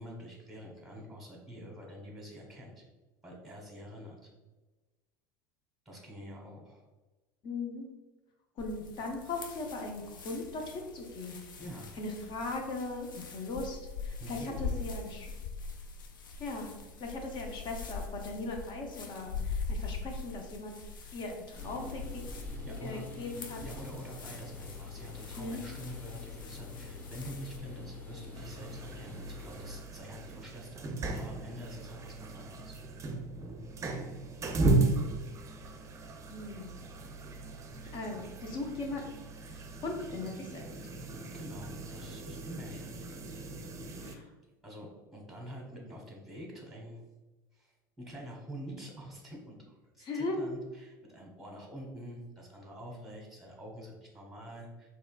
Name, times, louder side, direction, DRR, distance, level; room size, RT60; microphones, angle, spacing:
voice 1, 0.0-2.8 3.2-4.3 5.8-6.8 11.6-12.0 14.2-14.9 22.6-23.0 23.6-32.8 41.3-42.9 44.6-47.0 47.5-54.9, equal, 5° right, -1 dB, 1.3 m, -46 dB
voice 2, 7.4-7.9 8.6-11.4 12.0-15.3 16.4-16.7 17.0-20.8 21.1-22.2 22.8-23.6 25.3-25.6 36.3-36.7 37.9-39.0 39.5-40.6 44.0-44.3 50.0-50.4, left 2 dB, 45° left, 2 dB, 0.8 m, -39 dB
sound 1, 8.6-27.6, left 4 dB, 80° left, 0.5 m, -42 dB
sound 2, 21.5-29.7, left 3 dB, 20° left, 1.0 m, -46 dB
sound 3, 28.3-44.2, right 2 dB, 30° right, 0.5 m, -36 dB
4.2 x 3.1 x 2.4 m, 1.2 s
hypercardioid pair, 80°, 11 cm